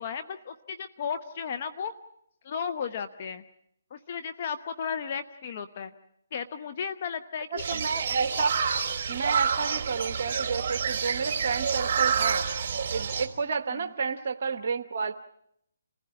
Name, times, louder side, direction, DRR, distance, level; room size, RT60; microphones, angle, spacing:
voice 1, 0.0-1.9 2.4-3.4 3.9-5.9 6.3-7.8, left 7 dB, 40° left, 11 dB, 0.9 m, -34 dB
voice 2, 7.5-8.5 9.1-12.5 12.9-15.1, right 5 dB, 50° right, 8 dB, 1.0 m, -30 dB
sound 1, 7.6-13.3, right 6 dB, 35° right, 3.7 m, -28 dB
28.5 x 16.0 x 8.8 m, 0.76 s
figure-of-eight pair, 150°, 0 cm